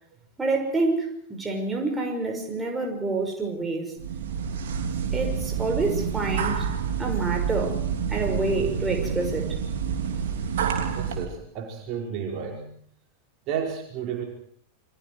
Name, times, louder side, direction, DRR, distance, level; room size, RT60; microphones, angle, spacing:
voice 1, 0.4-3.9 5.1-6.7 7.0-7.8 8.1-9.6, right 3 dB, 15° right, 2 dB, 5.8 m, -27 dB
sound 1, 4.0-11.3, right 7 dB, 60° right, 3.2 m, -28 dB
voice 2, 11.0-12.7 13.5-14.2, right 7 dB, 40° right, 1 dB, 5.2 m, -32 dB
29.5 x 24.5 x 4.9 m, 0.62 s
figure-of-eight pair, 90°, 0 cm